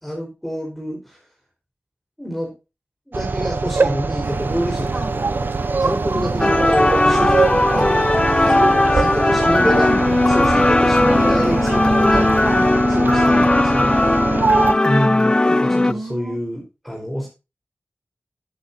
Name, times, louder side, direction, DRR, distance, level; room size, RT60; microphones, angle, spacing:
voice 1, 0.0-1.2 2.2-2.5 3.1-5.5 5.8-9.9 10.2-12.2 12.9-13.9 14.8-17.3, equal, ahead, -2 dB, 4.2 m, -27 dB
sound 1, 3.1-14.7, right 4 dB, 55° right, 0.7 m, -23 dB
sound 2, 4.2-12.7, right 3 dB, 80° right, 2.2 m, -31 dB
voice 2, 6.1-6.6 7.6-8.0 9.4-10.1 11.1-12.7 13.0-13.5 14.3-15.3 15.7-16.4, right 1 dB, 30° right, 0 dB, 7.0 m, -30 dB
sound 3, 6.4-15.9, left 2 dB, 20° left, 0.4 m, -17 dB
11.0 x 9.4 x 2.7 m, 0.28 s
wide cardioid pair, 70°, 4 cm